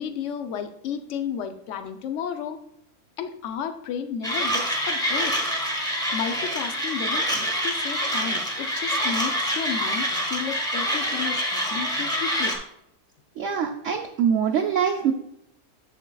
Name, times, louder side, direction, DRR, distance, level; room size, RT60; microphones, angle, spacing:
voice 1, 0.0-2.6 3.2-5.4 6.1-12.6, left 7 dB, 60° left, 7 dB, 0.8 m, -33 dB
Mechanisms, 4.2-12.6, equal, 5° left, 0.7 m, -26 dB
voice 2, 13.4-15.1, right 7 dB, 65° right, 1 dB, 0.8 m, -23 dB
7.2 x 7.1 x 2.3 m, 0.75 s
omnidirectional pair, 1.6 m